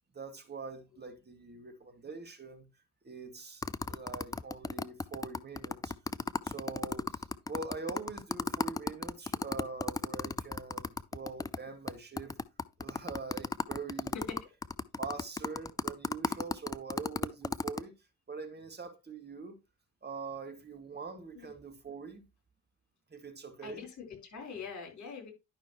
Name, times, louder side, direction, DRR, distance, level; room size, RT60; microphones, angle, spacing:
voice 1, 0.1-2.7 3.0-5.9 6.4-12.3 12.8-14.2 15.0-17.9 18.3-19.6 20.0-22.3 23.1-23.8, right 4 dB, 25° right, 2.0 m, -44 dB
sound 1, 3.6-11.6 11.9-12.0 12.2-17.8, left 4 dB, 10° left, 0.3 m, -34 dB
voice 2, 23.6-25.3, left 5 dB, 45° left, 4.2 m, -43 dB
10.5 x 5.6 x 3.0 m
hypercardioid pair, 50°, 41 cm